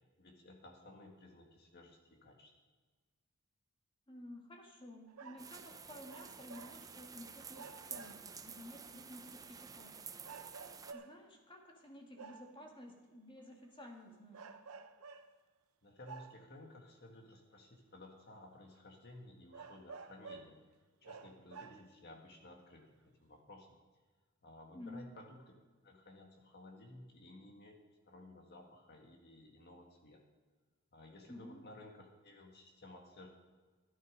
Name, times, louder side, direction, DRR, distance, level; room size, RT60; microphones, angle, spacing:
voice 1, 0.2-2.5 15.8-20.6 21.0-23.8 24.4-25.4 25.8-27.8 28.1-30.2 30.9-33.3, left 2 dB, 50° left, 2 dB, 1.9 m, -56 dB
voice 2, 4.1-10.1 10.9-14.5 24.7-25.1 31.3-31.6, left 1 dB, 25° left, 1 dB, 1.9 m, -53 dB
sound 1, 5.1-5.6 6.1-7.2 7.5-8.4 9.1-9.2 10.2-11.4 12.2-12.6 13.7-13.9 14.3-15.4 16.0-16.7 17.5-17.6 18.3-18.4 18.8-18.9 19.5-20.6 21.0-22.1 22.8-22.9, right 5 dB, 75° right, 0.7 m, -52 dB
sound 2, 5.4-10.9, right 6 dB, 15° right, 0.5 m, -51 dB
12.5 x 11.0 x 5.2 m, 1.4 s
head